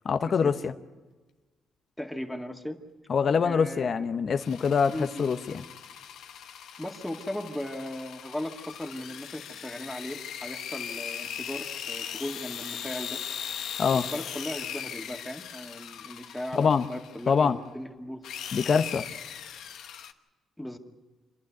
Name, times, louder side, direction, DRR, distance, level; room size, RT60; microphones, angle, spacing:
voice 1, 0.0-0.7 3.1-5.6 13.8-14.0 16.5-16.9 17.3-17.6 18.5-19.1, left 6 dB, 50° left, 0.9 m, -24 dB
voice 2, 2.0-2.8 3.4-4.1 4.9-5.3 6.8-13.2 13.9-18.2 20.6-20.8, left 1 dB, 5° left, 2.2 m, -37 dB
sound 1, 4.3-17.5 18.2-20.1, left 8 dB, 80° left, 1.1 m, -39 dB
28.0 x 11.5 x 9.5 m
cardioid pair, 90°, 0 cm